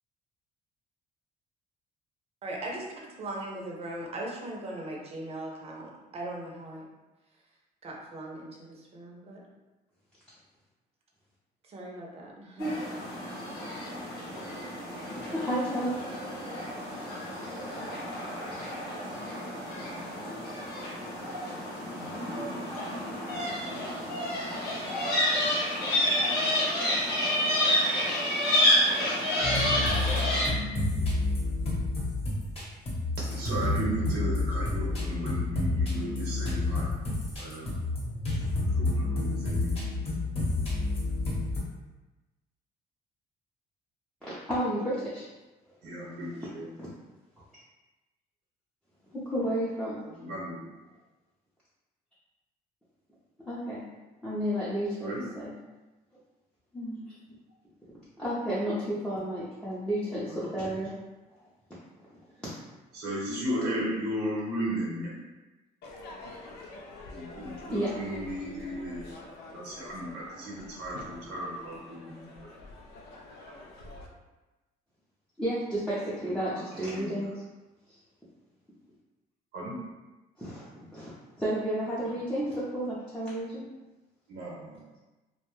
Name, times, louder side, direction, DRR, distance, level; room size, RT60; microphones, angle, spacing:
voice 1, 2.4-6.9 7.8-9.4 11.6-12.7, right 1 dB, 35° right, -2 dB, 0.6 m, -39 dB
sound 1, 12.6-30.5, left 1 dB, 90° left, 1.0 m, -29 dB
voice 2, 15.3-16.0 44.5-45.2 46.8-46.9 49.1-50.0 53.4-53.8 54.2-55.5 56.7-57.0 58.2-60.9 62.4-62.6 67.7-67.9 75.4-77.3 77.9-78.0 80.4-81.1 81.4-83.7, right 1 dB, 5° left, -10 dB, 0.6 m, -31 dB
sound 2, 29.4-41.6, left 2 dB, 35° left, 1.0 m, -29 dB
voice 3, 33.2-36.9 37.4-37.7 38.6-39.8 45.8-46.7 50.0-50.6 55.0-55.2 60.3-60.8 62.9-65.2 67.1-69.0 69.4-72.5 76.2-77.1 79.5-79.8 84.3-84.8, equal, 85° right, -4 dB, 0.8 m, -35 dB
Crowd / Fireworks, 65.8-74.1, left 2 dB, 75° left, 0.5 m, -46 dB
2.5 x 2.2 x 3.1 m, 1.1 s
cardioid pair, 110°, 17 cm